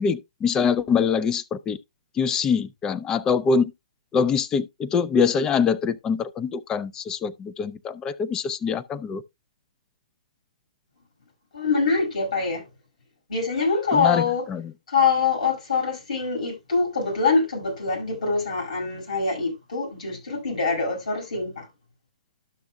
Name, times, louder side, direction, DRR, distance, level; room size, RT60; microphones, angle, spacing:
voice 1, 0.0-1.8 2.2-3.7 4.1-9.2 13.9-14.7, left 6 dB, 15° left, 0.4 m, -24 dB
voice 2, 11.5-12.6 13.3-14.5 14.9-21.7, left 4 dB, 70° left, 5.5 m, -24 dB
12.0 x 7.0 x 2.3 m
hypercardioid pair, 135°, 4 cm